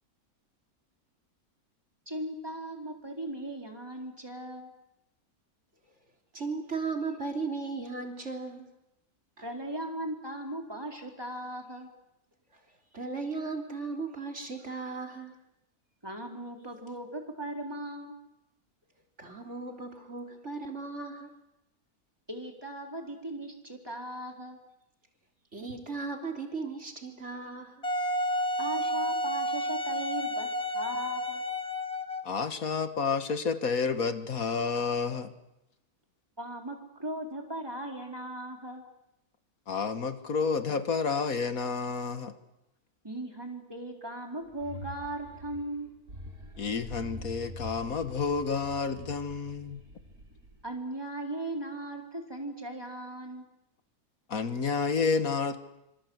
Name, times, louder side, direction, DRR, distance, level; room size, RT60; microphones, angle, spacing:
voice 1, 2.1-4.7 9.4-11.9 16.0-18.2 22.3-24.6 28.6-30.5 30.7-31.4 36.4-38.8 43.0-45.9 50.6-53.4, right 1 dB, 15° right, 4.1 m, -38 dB
voice 2, 6.3-8.7 9.4-9.5 12.5-12.6 12.9-15.4 19.2-21.4 25.5-27.9, right 4 dB, 50° right, 3.6 m, -36 dB
Wind instrument woodwind instrument, 27.8-32.3, equal, 25° left, 1.9 m, -31 dB
voice 3, 32.2-35.3 39.7-42.3 46.6-49.8 54.3-55.6, left 5 dB, 75° left, 1.9 m, -30 dB
sound 1, 44.4-50.8, left 1 dB, 85° right, 5.5 m, -45 dB
26.0 x 25.5 x 8.0 m
omnidirectional pair, 1.5 m